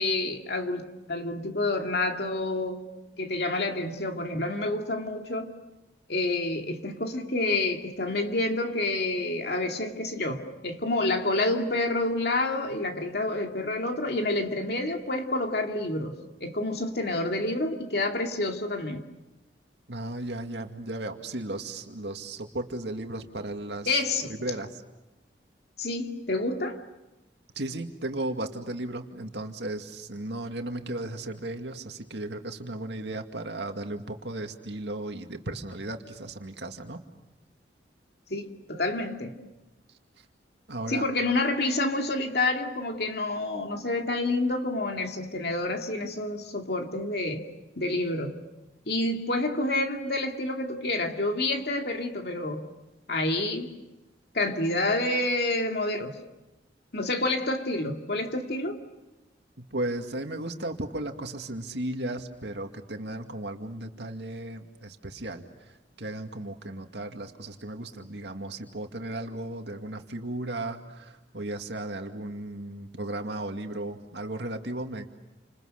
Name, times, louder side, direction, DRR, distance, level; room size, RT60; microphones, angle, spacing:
voice 1, 0.0-2.8 3.2-5.5 6.1-19.1 23.9-24.3 25.8-26.8 38.3-39.4 40.9-47.4 47.8-48.4 48.9-52.7 53.1-53.7 54.3-56.2 56.9-58.8, left 2 dB, 60° left, 2.4 m, -28 dB
voice 2, 19.9-24.0 24.4-24.8 27.6-37.0 40.7-41.1 59.6-65.4 66.0-75.1, right 2 dB, 75° right, 2.2 m, -35 dB
29.5 x 27.0 x 6.6 m
head